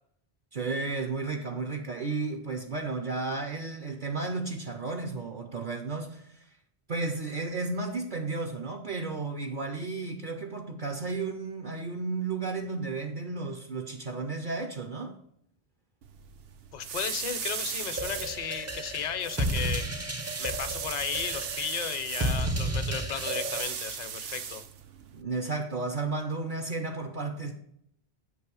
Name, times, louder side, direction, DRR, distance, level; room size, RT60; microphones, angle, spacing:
voice 1, 0.5-6.6 6.9-15.2 25.1-27.5, right 3 dB, 55° right, 0.8 m, -33 dB
sound 1, 16.0-25.2, right 7 dB, 75° right, 0.9 m, -38 dB
voice 2, 16.7-19.9 20.4-24.6, left 8 dB, 50° left, 0.7 m, -35 dB
sound 2, 18.0-23.6, right 1 dB, 20° right, 0.5 m, -32 dB
7.8 x 3.1 x 6.0 m
omnidirectional pair, 1.0 m